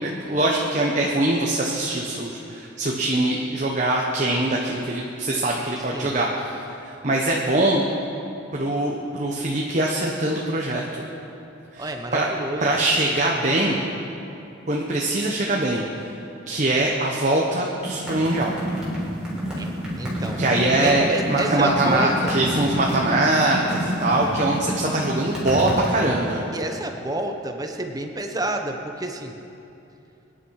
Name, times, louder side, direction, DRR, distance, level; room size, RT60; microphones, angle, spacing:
voice 1, 0.0-6.5 6.8-7.8 8.5-10.8 11.7-12.3 12.6-13.8 14.7-15.8 16.5-18.5 20.4-26.4, right 2 dB, 40° right, -1 dB, 1.2 m, -22 dB
voice 2, 11.8-12.7 19.6-19.7 20.0-20.4 20.8-22.4 26.5-29.4, right 1 dB, 20° right, 4 dB, 1.0 m, -29 dB
sound 1, 17.8-26.0, equal, 5° right, 3.9 m, -28 dB
24.5 x 10.0 x 4.9 m, 2.8 s
head